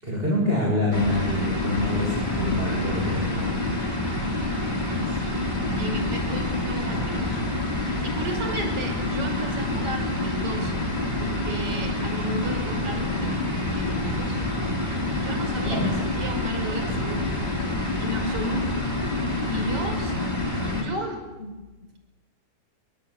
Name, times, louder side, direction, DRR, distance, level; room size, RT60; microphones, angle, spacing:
voice 1, 0.0-3.6 15.6-15.9, left 1 dB, 15° right, -2 dB, 7.8 m, -26 dB
sound 1, 0.9-20.8, left 2 dB, 10° left, 6.3 m, -27 dB
voice 2, 5.1-5.5 5.8-7.4 7.7-10.8 11.2-13.4 13.7-14.4 14.8-15.8 16.2-17.4 18.0-18.9 19.1-20.2 20.7-21.5, right 1 dB, 35° right, 4 dB, 6.5 m, -34 dB
28.0 x 24.0 x 8.8 m, 1.2 s
omnidirectional pair, 4.3 m